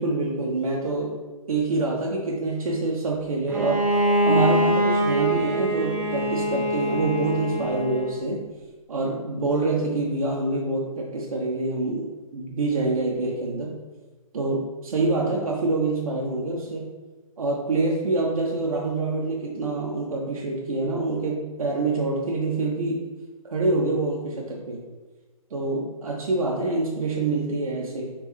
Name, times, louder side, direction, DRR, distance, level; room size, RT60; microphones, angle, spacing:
voice 1, 0.0-3.8 4.2-8.4 8.9-13.7 14.3-16.9 17.4-23.0 23.4-24.8 25.5-28.1, right 3 dB, 70° right, -2 dB, 0.7 m, -26 dB
Bowed string instrument, 3.5-8.2, equal, 10° right, 0.6 m, -23 dB
3.4 x 3.3 x 3.1 m, 1.2 s
figure-of-eight pair, 130°, 18 cm